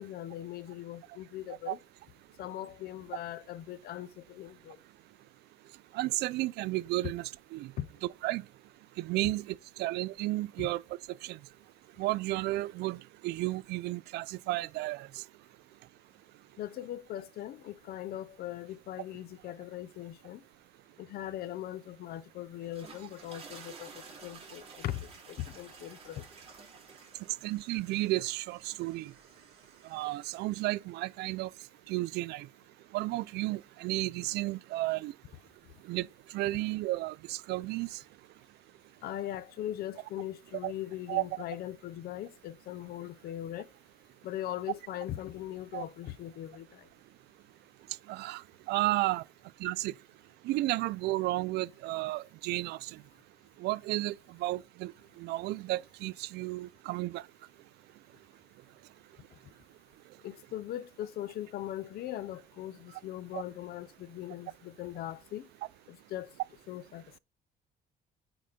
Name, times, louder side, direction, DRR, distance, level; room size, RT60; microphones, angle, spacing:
voice 1, 0.0-1.8 2.4-4.8 7.8-7.9 10.6-10.7 16.6-20.4 21.0-26.3 39.0-43.7 44.2-46.9 60.2-65.5 65.9-66.3 66.7-67.0, left 13 dB, 65° left, 0.7 m, -40 dB
voice 2, 5.9-7.7 8.2-8.4 9.0-10.8 11.2-11.4 12.0-15.1 27.4-29.1 29.9-31.5 31.9-32.5 32.9-35.1 35.9-36.1 36.3-37.9 40.6-40.7 41.1-41.2 45.7-45.8 48.1-48.4 48.7-49.2 49.6-49.9 50.4-52.9 53.6-54.1 54.4-54.9 55.2-57.2 63.3-63.4, right 18 dB, 80° right, 0.4 m, -32 dB
sound 1, 22.5-30.9, right 4 dB, 35° right, 4.8 m, -53 dB
8.8 x 4.0 x 5.1 m
cardioid pair, 110°, 17 cm